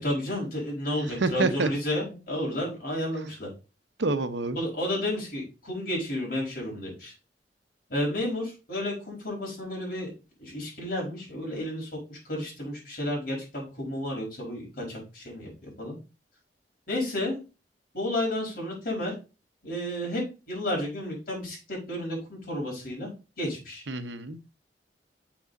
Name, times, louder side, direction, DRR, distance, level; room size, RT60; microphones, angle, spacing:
voice 1, 0.0-3.5 4.5-7.1 7.9-10.1 10.4-15.9 16.9-17.4 17.9-19.1 19.6-23.1 23.4-23.8, left 1 dB, 55° left, -2 dB, 5.1 m, -32 dB
voice 2, 1.0-1.7 4.0-4.6 23.9-24.4, right 3 dB, 85° right, 11 dB, 0.9 m, -27 dB
6.9 x 6.1 x 4.0 m, 0.31 s
head